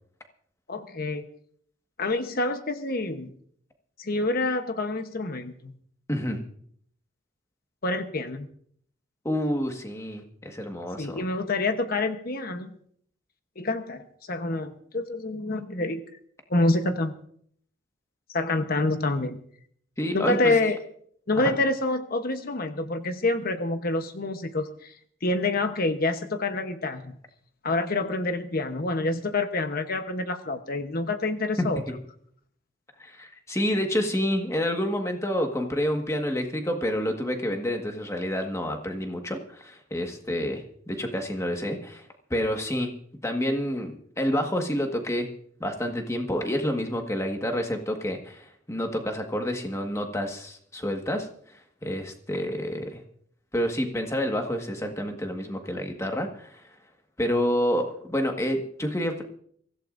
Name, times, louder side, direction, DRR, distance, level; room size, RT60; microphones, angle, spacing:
voice 1, 0.7-1.3 2.0-3.3 4.0-5.7 7.8-8.5 11.0-12.7 13.6-16.1 16.5-17.2 18.3-19.4 20.1-20.8 21.3-24.9 25.2-27.2 27.6-31.8, left 2 dB, 45° left, 8 dB, 1.0 m, -27 dB
voice 2, 6.1-6.4 9.2-11.2 20.0-20.5 21.4-21.5 31.6-31.7 33.0-42.9 43.2-45.3 45.6-51.3 51.8-53.0 53.5-56.6 57.2-59.2, equal, 15° left, 4 dB, 1.6 m, -28 dB
23.5 x 15.0 x 2.6 m, 0.63 s
head